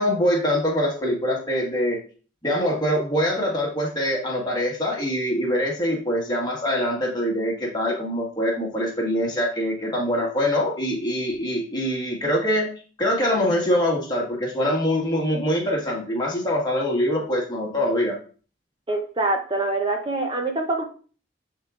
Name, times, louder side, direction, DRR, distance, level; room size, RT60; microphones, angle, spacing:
voice 1, 0.0-2.0 2.4-12.7 13.0-18.2, equal, 20° left, -2 dB, 1.5 m, -24 dB
voice 2, 18.9-20.8, right 2 dB, 25° right, 2 dB, 0.7 m, -25 dB
10.0 x 3.8 x 2.4 m, 0.39 s
head